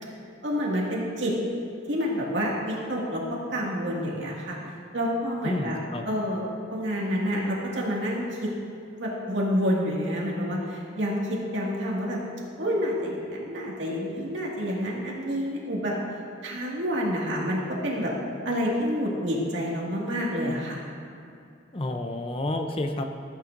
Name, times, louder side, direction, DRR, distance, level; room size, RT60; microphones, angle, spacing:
voice 1, 0.4-1.3 1.9-4.6 4.9-5.8 6.0-8.5 9.0-12.2 12.6-15.9 16.4-18.1 18.4-20.8, equal, 75° right, -3 dB, 2.1 m, -28 dB
voice 2, 5.4-6.1 21.7-23.0, left 1 dB, 30° left, 5 dB, 0.6 m, -30 dB
15.0 x 8.7 x 2.6 m, 2.6 s
head